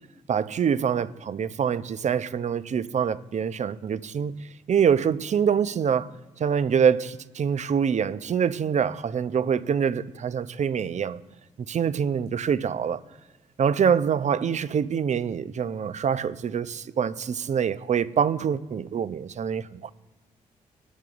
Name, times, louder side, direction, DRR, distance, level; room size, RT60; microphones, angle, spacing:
voice 1, 0.3-4.3 4.7-6.1 6.4-11.2 11.7-13.0 13.6-19.9, right 7 dB, 45° right, 0.7 m, -25 dB
19.0 x 9.0 x 2.5 m
hypercardioid pair, 40°, 17 cm